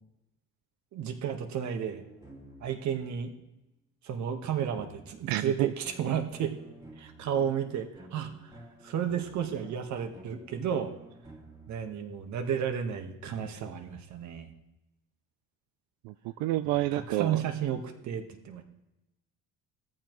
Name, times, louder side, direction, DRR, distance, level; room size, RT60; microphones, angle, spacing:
voice 1, 0.9-2.0 2.6-3.3 4.0-6.5 7.0-8.5 8.8-10.9 11.7-14.5 16.9-18.6, right 8 dB, 55° right, 6 dB, 1.4 m, -32 dB
sound 1, 1.7-3.4 4.7-12.5, right 1 dB, 10° right, 2.0 m, -52 dB
voice 2, 5.3-5.7 16.0-17.4, right 15 dB, 85° right, 12 dB, 0.5 m, -29 dB
18.0 x 14.0 x 3.1 m, 0.95 s
cardioid pair, 160°, 35 cm